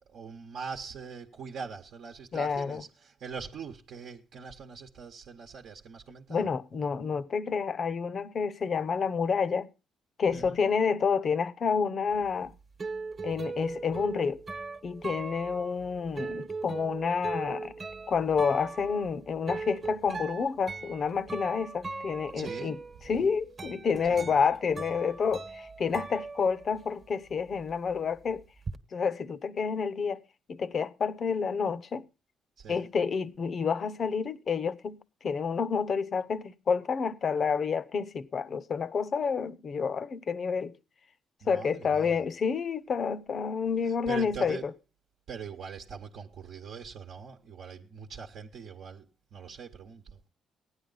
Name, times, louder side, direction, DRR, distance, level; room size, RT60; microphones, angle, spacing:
voice 1, 0.1-6.5 10.3-10.6 22.3-22.8 23.0-23.1 24.1-24.4 32.6-32.9 41.4-42.2 43.9-44.7 45.3-50.2, right 6 dB, 70° right, 0.9 m, -42 dB
voice 2, 2.3-2.8 6.3-9.7 10.2-12.5 13.2-14.4 14.8-17.7 18.1-22.8 23.1-28.4 28.9-30.2 30.5-32.0 32.7-40.7 41.5-44.6, left 6 dB, 50° left, 0.7 m, -29 dB
sound 1, 12.2-27.0 27.3-28.8, right 4 dB, 40° right, 1.1 m, -40 dB
15.5 x 9.8 x 3.9 m
cardioid pair, 90°, 0 cm